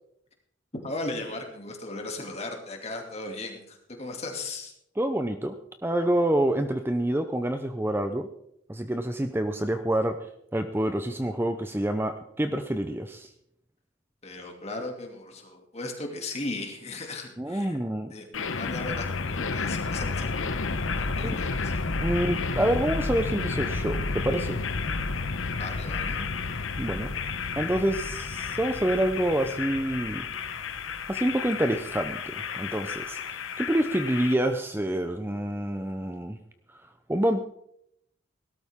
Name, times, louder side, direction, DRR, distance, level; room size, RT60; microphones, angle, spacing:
voice 1, 0.7-4.7 14.2-17.8 18.1-18.3 18.5-20.5 21.0-21.8 25.5-26.3, left 2 dB, 35° left, 2 dB, 2.6 m, -37 dB
voice 2, 5.0-5.6 5.8-8.3 8.7-10.2 10.5-13.3 17.4-18.1 21.2-21.3 22.0-24.6 26.8-27.1 27.6-30.3 31.1-36.4 36.7-36.8 37.1-37.4, right 1 dB, 10° right, 7 dB, 0.6 m, -27 dB
sound 1, 18.3-34.3, left 4 dB, 85° left, 1.0 m, -31 dB
18.5 x 12.5 x 3.6 m, 0.74 s
head